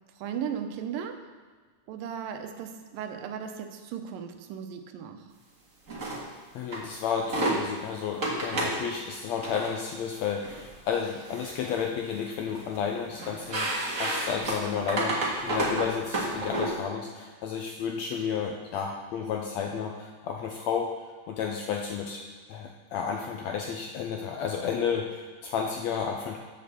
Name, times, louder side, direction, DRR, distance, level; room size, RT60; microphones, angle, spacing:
voice 1, 0.2-1.2 1.9-5.3, right 8 dB, 90° right, 6 dB, 2.5 m, -36 dB
sound 1, 5.9-6.2 6.7-6.8 7.2-7.6 8.2-8.8 9.3-9.7 10.4-10.6 11.1-11.8 12.1-12.8 13.2-16.7, right 2 dB, 35° right, 1.3 m, -30 dB
voice 2, 6.5-20.9 21.3-22.2 22.5-26.4, left 7 dB, 80° left, 1 dB, 1.6 m, -32 dB
7.5 x 6.9 x 6.7 m, 1.5 s
omnidirectional pair, 3.8 m